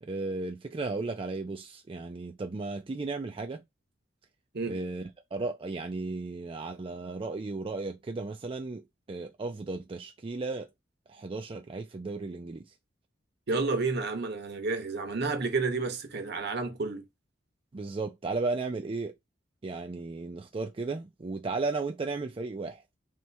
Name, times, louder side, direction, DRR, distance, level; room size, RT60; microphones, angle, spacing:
voice 1, 0.0-3.6 4.7-8.8 9.1-10.7 11.1-12.6 17.7-19.1 19.6-22.8, right 3 dB, 30° right, 0.4 m, -35 dB
voice 2, 13.5-17.1, right 3 dB, 60° right, 1.1 m, -30 dB
3.2 x 3.0 x 4.5 m
head